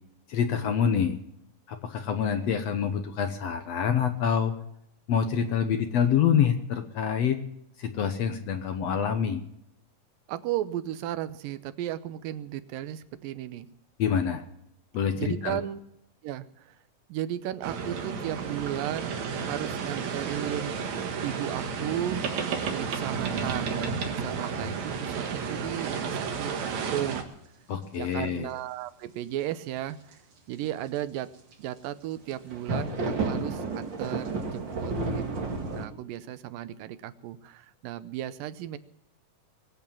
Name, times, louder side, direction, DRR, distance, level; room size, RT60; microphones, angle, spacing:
voice 1, 0.3-1.2 1.7-4.5 5.1-7.4 7.8-9.4 14.0-14.4 14.9-15.6 27.7-28.5, left 7 dB, 65° left, 7 dB, 1.7 m, -26 dB
voice 2, 10.3-13.7 15.1-15.8 16.2-16.8 17.1-22.2 22.7-26.5 26.9-27.3 27.9-30.2 30.5-31.3 31.6-38.8, right 12 dB, 90° right, 14 dB, 2.5 m, -35 dB
sound 1, 17.6-27.2, right 6 dB, 60° right, 2.7 m, -32 dB
sound 2, 24.4-24.5 27.2-27.3 29.9-30.1 31.5-31.6 32.2-35.9, right 3 dB, 40° right, 2.4 m, -31 dB
21.5 x 8.4 x 7.2 m, 0.77 s
omnidirectional pair, 3.9 m